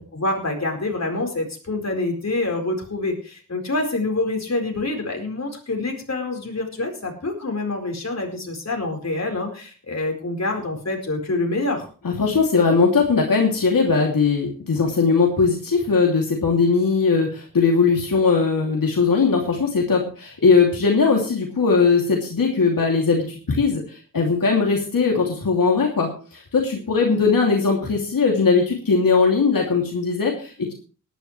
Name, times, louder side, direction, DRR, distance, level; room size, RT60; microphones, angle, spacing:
voice 1, 0.1-11.9, left 2 dB, 50° left, 1 dB, 4.6 m, -26 dB
voice 2, 12.0-30.7, left 4 dB, 85° left, 0 dB, 2.8 m, -19 dB
19.0 x 11.5 x 3.3 m, 0.37 s
wide cardioid pair, 85°, 33 cm